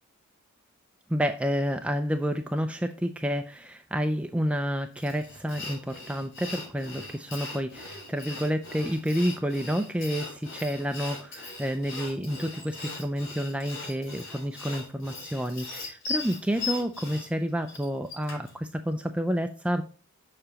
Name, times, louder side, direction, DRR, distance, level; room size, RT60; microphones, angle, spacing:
voice 1, 1.1-19.8, equal, 5° right, 7 dB, 0.3 m, -29 dB
Sawing, 5.0-18.6, left 3 dB, 60° left, 3.8 m, -39 dB
6.8 x 6.6 x 2.8 m, 0.39 s
head